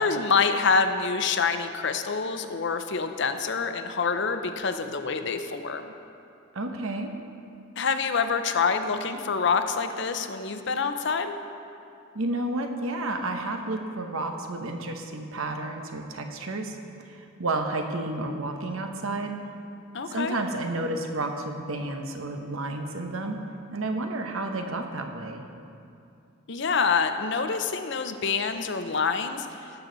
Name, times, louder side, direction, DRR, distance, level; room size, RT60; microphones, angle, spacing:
voice 1, 0.0-5.9 7.8-11.4 19.9-20.3 26.5-29.5, left 5 dB, 60° left, 8 dB, 0.6 m, -26 dB
voice 2, 6.5-7.1 12.1-16.8 17.1-19.4 20.1-23.4 23.7-25.4, right 2 dB, 85° right, 4 dB, 1.0 m, -31 dB
18.0 x 7.1 x 4.0 m, 2.6 s
head